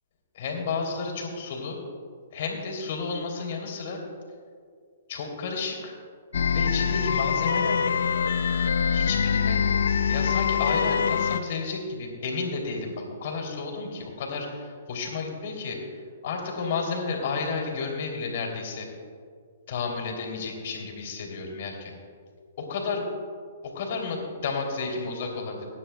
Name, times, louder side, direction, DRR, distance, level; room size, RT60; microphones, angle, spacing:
voice 1, 0.3-1.8 2.3-4.0 5.1-5.9 6.5-8.0 8.9-9.6 10.1-15.8 16.2-18.9 19.7-21.9 22.6-23.1 23.6-25.6, left 4 dB, 55° left, 0 dB, 3.0 m, -32 dB
sound 1, 6.3-11.4, left 6 dB, 75° left, 0.6 m, -24 dB
22.0 x 9.8 x 2.3 m, 2.1 s
hypercardioid pair, 130°, 0 cm